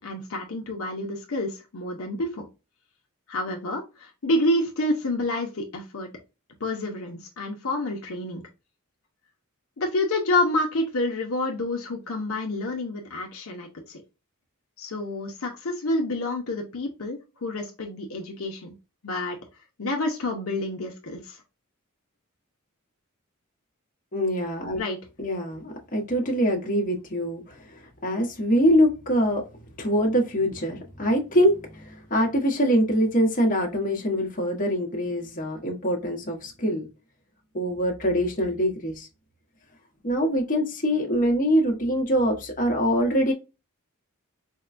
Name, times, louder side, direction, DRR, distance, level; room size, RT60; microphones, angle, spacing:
voice 1, 0.0-2.5 3.3-6.1 6.6-8.5 9.8-14.0 14.8-18.7 19.0-19.4 19.8-21.4 24.8-25.0, left 1 dB, 70° left, 1 dB, 0.7 m, -28 dB
voice 2, 24.1-24.8 25.2-29.5 29.8-36.8 37.5-39.1 40.0-43.3, equal, 40° left, 0 dB, 1.0 m, -24 dB
4.5 x 2.2 x 2.4 m, 0.28 s
head